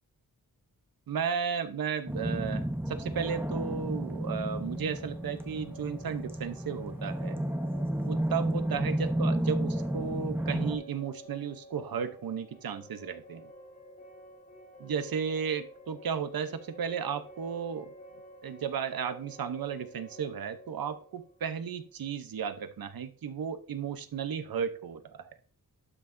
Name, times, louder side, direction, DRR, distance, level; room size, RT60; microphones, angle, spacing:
voice 1, 1.1-7.4 8.1-13.5 14.8-17.9 18.4-25.3, right 7 dB, 75° right, 10 dB, 0.9 m, -34 dB
sound 1, 2.1-10.8, right 1 dB, 5° right, 0.9 m, -32 dB
sound 2, 4.5-22.3, equal, 25° left, 3.7 m, -51 dB
12.0 x 5.9 x 2.6 m, 0.41 s
wide cardioid pair, 180°, 35 cm